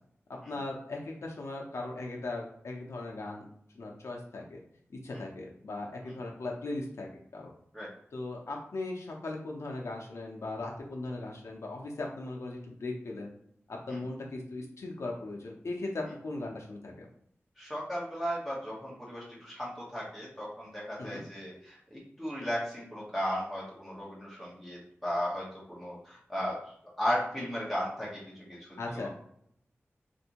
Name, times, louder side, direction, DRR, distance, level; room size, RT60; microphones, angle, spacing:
voice 1, 0.5-3.4 3.7-4.6 5.0-7.1 7.3-7.5 8.1-13.3 13.7-17.1 21.0-21.2 28.8-29.1, left 2 dB, 80° left, -1 dB, 0.6 m, -38 dB
voice 2, 17.6-26.6 27.0-28.7 28.9-29.1, equal, 5° right, -6 dB, 1.0 m, -35 dB
3.4 x 2.6 x 2.9 m, 0.69 s
wide cardioid pair, 75°, 5 cm